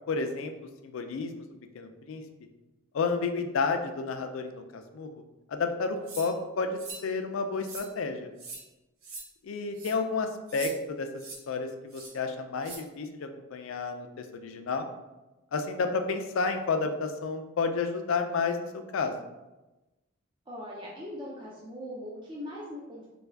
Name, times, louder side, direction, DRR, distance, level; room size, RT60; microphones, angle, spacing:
voice 1, 0.1-0.5 0.8-1.4 1.7-2.2 2.9-5.1 5.5-8.3 9.4-14.9 15.5-19.1, left 4 dB, 70° left, 7 dB, 0.4 m, -31 dB
sound 1, 6.1-6.3 6.8-7.0 7.6-7.9 8.4-8.6 9.0-9.2 9.7-9.9 10.5-10.7 11.2-11.4 11.9-12.1 12.6-12.8, right 3 dB, 75° right, 0.8 m, -41 dB
voice 2, 20.5-23.1, left 1 dB, 20° right, -5 dB, 0.4 m, -40 dB
3.4 x 2.2 x 3.3 m, 1.0 s
head